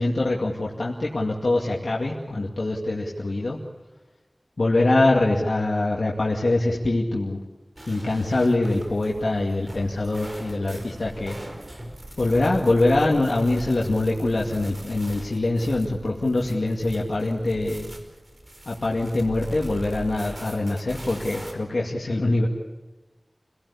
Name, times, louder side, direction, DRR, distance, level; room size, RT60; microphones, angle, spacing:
voice 1, 0.0-3.6 4.6-7.4 7.8-11.4 12.2-17.9 18.7-22.5, left 2 dB, 85° left, -2 dB, 2.3 m, -23 dB
sound 1, 7.8-21.5, right 1 dB, 50° right, 5.0 m, -41 dB
28.5 x 17.5 x 8.6 m, 1.2 s
wide cardioid pair, 45°, 0 cm